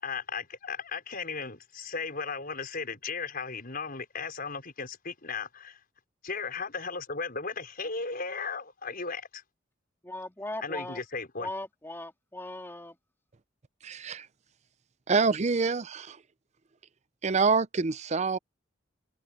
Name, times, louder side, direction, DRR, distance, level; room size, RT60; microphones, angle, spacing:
voice 1, 0.0-5.8 6.2-9.4 10.6-11.5, left 4 dB, 50° left, 5.4 m, -36 dB
voice 2, 10.0-11.0 11.4-13.0, left 1 dB, 10° left, 2.6 m, -38 dB
voice 3, 13.8-14.3 15.1-16.2 17.2-18.4, right 4 dB, 35° right, 0.6 m, -26 dB
open air
head